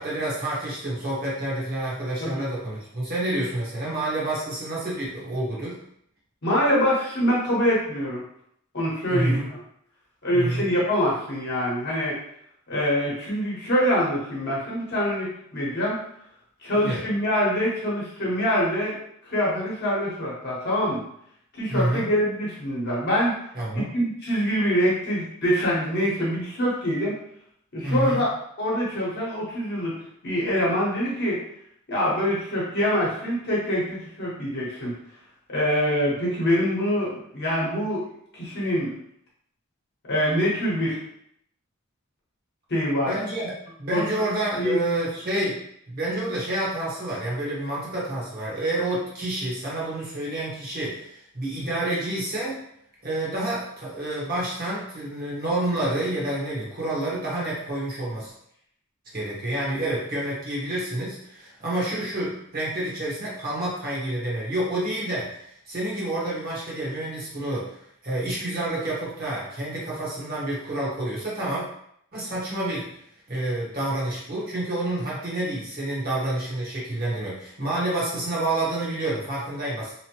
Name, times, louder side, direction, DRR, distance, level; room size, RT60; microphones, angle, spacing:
voice 1, 0.0-5.8 9.1-9.5 10.3-10.6 16.7-17.0 21.7-22.1 23.5-23.9 27.8-28.2 43.1-43.5 43.8-45.6 45.9-52.6 53.0-58.3 59.1-67.7 68.0-71.6 72.1-72.8 73.3-79.9, right 1 dB, 45° right, -6 dB, 1.1 m, -28 dB
voice 2, 6.4-8.2 8.7-9.6 10.2-12.2 12.7-16.0 16.6-19.0 19.3-21.0 21.5-23.4 23.7-27.2 27.7-28.3 28.6-29.9 30.2-31.4 31.9-35.0 35.5-38.1 38.3-38.9 40.1-41.0 42.7-43.1 43.9-44.0 44.6-44.8, equal, 50° left, -5 dB, 1.0 m, -24 dB
3.0 x 2.1 x 2.9 m, 0.70 s
head